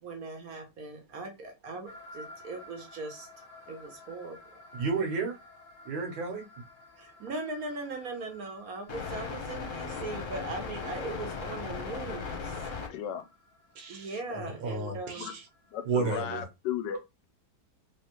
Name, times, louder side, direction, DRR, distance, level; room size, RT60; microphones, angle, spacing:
voice 1, 0.0-3.3 3.7-4.4 7.0-12.5 13.9-15.3 16.1-16.2, right 3 dB, 55° right, 1.2 m, -39 dB
sound 1, 1.9-12.9, left 5 dB, 50° left, 1.1 m, -41 dB
voice 2, 4.8-5.4 5.9-6.4 13.8-15.4 15.9-16.4, right 4 dB, 80° right, 1.7 m, -32 dB
voice 3, 12.9-13.2 15.2-15.3 15.7-17.3, left 9 dB, 75° left, 1.1 m, -35 dB
3.4 x 3.3 x 2.9 m
omnidirectional pair, 2.1 m